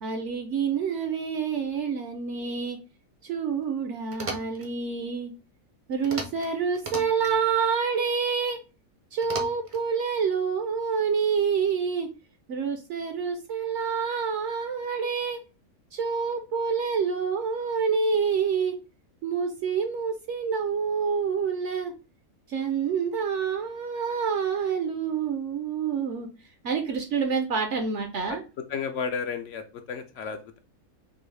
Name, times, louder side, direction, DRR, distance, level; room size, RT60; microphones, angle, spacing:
voice 1, 0.0-2.8 3.2-5.3 5.9-8.6 9.1-12.1 12.5-15.4 15.9-18.8 19.2-21.9 22.5-26.3 26.6-28.4, right 6 dB, 65° right, 5 dB, 0.8 m, -27 dB
sound 1, 4.1-4.7 6.0-6.5 6.7-7.4 9.2-9.8, right 3 dB, 40° right, 0.4 m, -36 dB
voice 2, 28.7-30.6, left 6 dB, 70° left, 7 dB, 0.8 m, -33 dB
5.2 x 2.0 x 3.2 m, 0.31 s
omnidirectional pair, 1.5 m